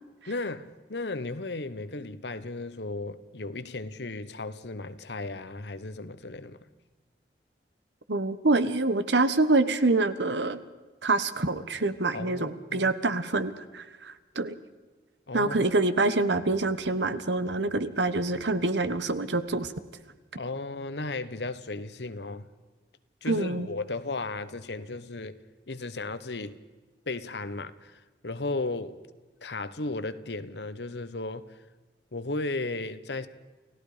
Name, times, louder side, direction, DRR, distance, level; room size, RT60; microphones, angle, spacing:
voice 1, 0.3-6.6 12.1-12.9 15.3-15.6 20.3-22.5 23.2-25.4 25.7-26.6 27.1-29.0 29.4-31.5 32.1-33.3, left 2 dB, 80° left, 1.2 m, -35 dB
voice 2, 8.1-10.6 11.0-14.5 15.3-19.7 23.3-23.7, right 2 dB, 85° right, 1.3 m, -26 dB
29.5 x 17.0 x 5.1 m
head